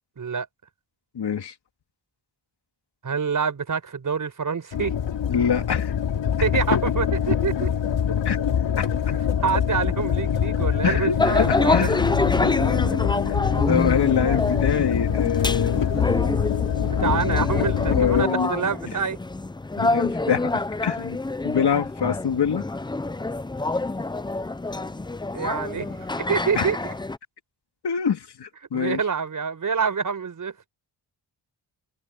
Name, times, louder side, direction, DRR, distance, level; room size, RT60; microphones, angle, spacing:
voice 1, 0.2-0.5 3.0-4.9 6.4-7.7 9.0-9.2 9.4-11.9 17.0-19.2 25.3-26.9 28.7-30.5, right 6 dB, 45° right, 4.9 m, -26 dB
voice 2, 1.1-1.5 5.3-5.9 8.2-8.4 8.8-8.9 10.8-12.0 12.4-13.0 13.3-13.4 13.7-15.9 16.9-17.1 17.6-18.7 19.8-21.2 21.4-22.6 26.5-26.7 27.8-29.0, left 7 dB, 60° left, 3.3 m, -25 dB
sound 1, 4.7-18.3, left 8 dB, 85° left, 2.8 m, -24 dB
sound 2, 11.2-27.2, left 2 dB, 10° left, 0.5 m, -27 dB
wide cardioid pair, 135°, 43 cm